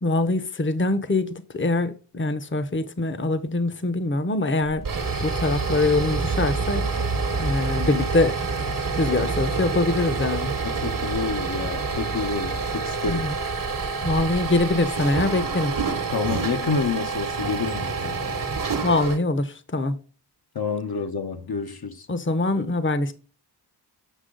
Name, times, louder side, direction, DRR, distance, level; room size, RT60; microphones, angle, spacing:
voice 1, 0.0-4.8 5.2-6.9 7.4-8.3 9.0-10.5 13.1-13.4 14.0-15.7 18.8-20.0 22.1-23.1, left 2 dB, 30° left, 0.8 m, -23 dB
sound 1, 4.6-19.2, right 4 dB, 50° right, 1.1 m, -27 dB
voice 2, 10.6-13.3 16.1-18.4 20.5-22.1, left 5 dB, 60° left, 0.9 m, -29 dB
8.3 x 5.9 x 3.8 m
wide cardioid pair, 55°, 42 cm